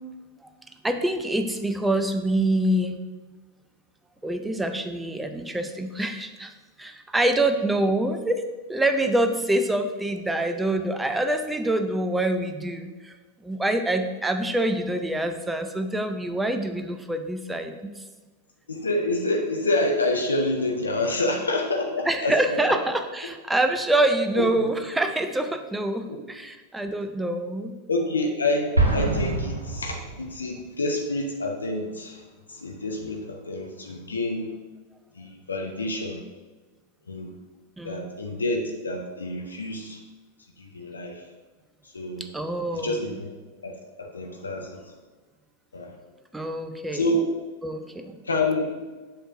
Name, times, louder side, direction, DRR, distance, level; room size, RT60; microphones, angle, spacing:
voice 1, 0.8-3.0 4.2-6.5 6.8-8.4 8.7-13.1 13.4-18.0 22.1-27.7 37.8-38.1 42.2-43.2 46.3-47.2 47.6-48.2, right 1 dB, 5° right, 7 dB, 0.6 m, -26 dB
voice 2, 18.7-22.7 24.3-24.4 27.9-34.5 35.1-36.2 37.1-37.3 37.8-40.0 40.6-41.3 41.8-42.3 42.7-43.3 43.6-43.7 44.0-44.9 45.7-45.9 46.9-47.2 48.2-48.8, left 2 dB, 75° left, 2 dB, 0.7 m, -28 dB
Explosion, 28.7-30.6, right 2 dB, 80° right, 1.0 m, -25 dB
7.8 x 6.3 x 2.6 m, 1.3 s
figure-of-eight pair, 90°, 0 cm